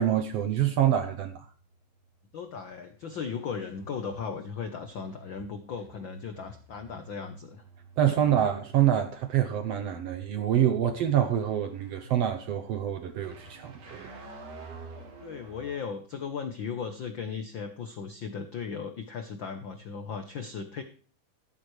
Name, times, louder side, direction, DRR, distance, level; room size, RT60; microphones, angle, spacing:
voice 1, 0.0-1.5 8.0-14.3, right 10 dB, 70° right, 1.6 m, -26 dB
sound 1, 1.6-15.8, right 2 dB, 50° right, 3.5 m, -50 dB
voice 2, 2.3-7.6 8.2-8.3 15.2-20.8, left 6 dB, 75° left, 1.1 m, -37 dB
13.5 x 12.5 x 3.3 m
omnidirectional pair, 3.7 m